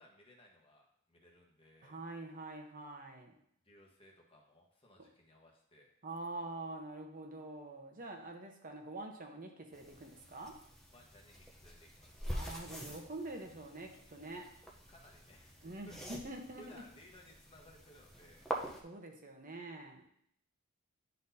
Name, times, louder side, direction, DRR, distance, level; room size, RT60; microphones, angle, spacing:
voice 1, 0.0-2.0 3.6-5.9 10.9-12.4 14.9-18.5, left 1 dB, 25° left, -1 dB, 1.2 m, -61 dB
voice 2, 1.8-3.3 5.0-5.1 6.0-10.5 12.3-14.4 15.6-16.8 18.8-20.0, right 2 dB, 40° right, 3 dB, 0.9 m, -46 dB
sound 1, 9.7-18.8, right 1 dB, ahead, 0.7 m, -46 dB
11.0 x 4.0 x 2.7 m, 0.69 s
head